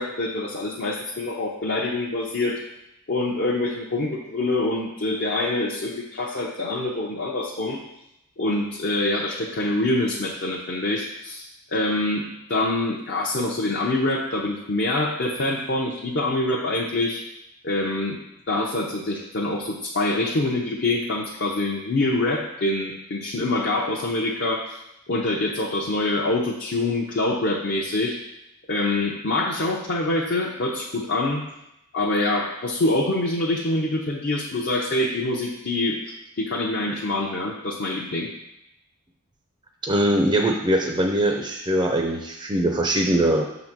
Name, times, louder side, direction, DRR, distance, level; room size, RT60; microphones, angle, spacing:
voice 1, 0.0-2.6 3.1-7.8 8.4-11.5 11.7-17.2 17.6-18.2 18.5-24.8 25.1-28.2 28.7-31.4 31.9-36.0 36.4-38.3, left 2 dB, 50° left, -1 dB, 0.7 m, -25 dB
voice 2, 39.8-43.4, right 1 dB, 20° right, 2 dB, 0.5 m, -22 dB
6.4 x 3.9 x 6.0 m, 0.85 s
head